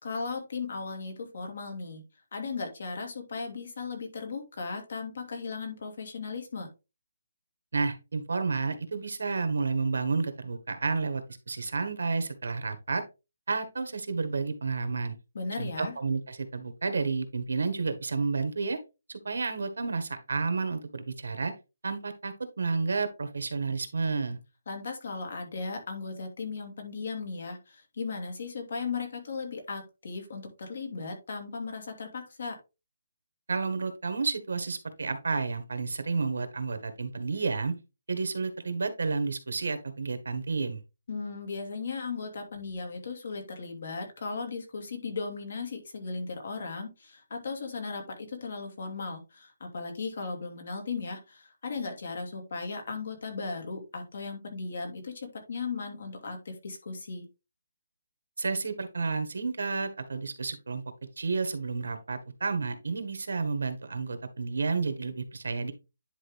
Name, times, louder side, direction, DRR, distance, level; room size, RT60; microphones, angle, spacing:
voice 1, 0.0-2.0 2.3-6.7 15.3-15.9 24.7-32.6 41.1-57.3, left 4 dB, 55° left, 4 dB, 2.5 m, -36 dB
voice 2, 7.7-13.0 13.5-15.1 15.6-18.8 19.1-21.5 21.8-24.4 33.5-37.7 38.1-40.8 58.4-60.8 61.2-65.7, right 4 dB, 80° right, 9 dB, 1.6 m, -31 dB
10.5 x 3.6 x 3.5 m, 0.27 s
hypercardioid pair, 170°, 0 cm